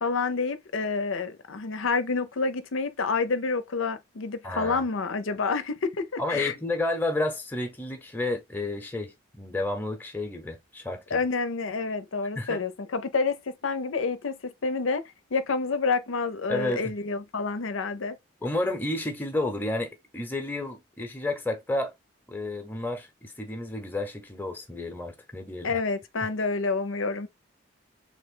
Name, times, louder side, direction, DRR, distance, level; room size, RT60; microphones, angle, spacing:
voice 1, 0.0-6.6 11.1-15.0 15.3-18.2 25.6-27.3, left 4 dB, 80° left, 0.6 m, -28 dB
voice 2, 4.4-4.8 6.2-11.2 12.3-12.6 16.5-16.9 18.4-21.9 22.3-25.8, left 2 dB, 10° left, 0.8 m, -31 dB
3.5 x 3.3 x 3.7 m
head